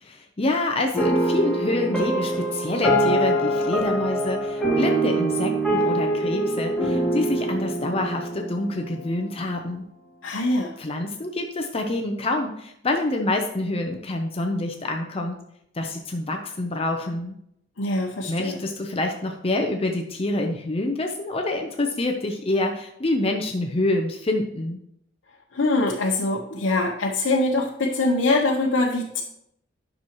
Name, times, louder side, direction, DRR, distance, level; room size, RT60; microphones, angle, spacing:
voice 1, 0.0-9.9 10.8-15.4 15.7-17.4 18.3-24.8, left 2 dB, 30° left, 3 dB, 0.6 m, -27 dB
sound 1, 0.9-9.5, right 1 dB, ahead, 2.3 m, -24 dB
voice 2, 10.2-10.8 17.8-18.6 25.5-29.2, left 2 dB, 80° left, -1 dB, 0.8 m, -23 dB
10.0 x 6.2 x 3.0 m, 0.75 s
head